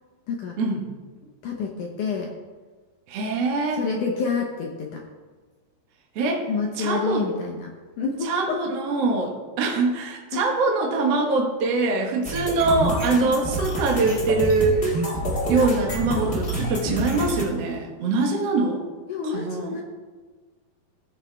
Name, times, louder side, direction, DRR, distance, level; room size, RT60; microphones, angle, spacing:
voice 1, 0.3-0.6 1.4-2.3 3.7-5.0 6.5-7.7 8.0-8.6 10.3-10.5 19.1-19.8, left 5 dB, 75° left, 0 dB, 1.9 m, -28 dB
voice 2, 3.1-3.8 6.2-6.5 6.8-7.2 8.3-14.8 15.5-18.8 19.2-19.8, right 3 dB, 55° right, 0 dB, 1.8 m, -23 dB
sound 1, 12.2-17.4, right 1 dB, 30° left, 1.0 m, -27 dB
15.5 x 7.3 x 3.4 m, 1.4 s
omnidirectional pair, 4.7 m